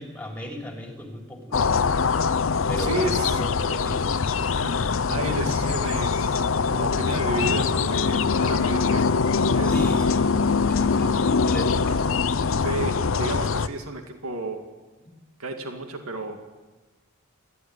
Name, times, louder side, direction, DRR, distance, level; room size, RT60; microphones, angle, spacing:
voice 1, 0.0-1.8 2.7-4.1 5.3-5.7 9.6-10.3 10.6-12.2 15.0-15.2, equal, 5° left, 2 dB, 3.4 m, -36 dB
sound 1, 1.5-13.7, left 5 dB, 65° left, 0.6 m, -23 dB
voice 2, 2.8-3.4 4.5-4.7 5.1-6.4 6.7-9.0 9.5-9.7 12.6-14.6 15.4-16.4, right 2 dB, 85° right, 5 dB, 2.2 m, -31 dB
29.0 x 12.5 x 9.6 m, 1.3 s
head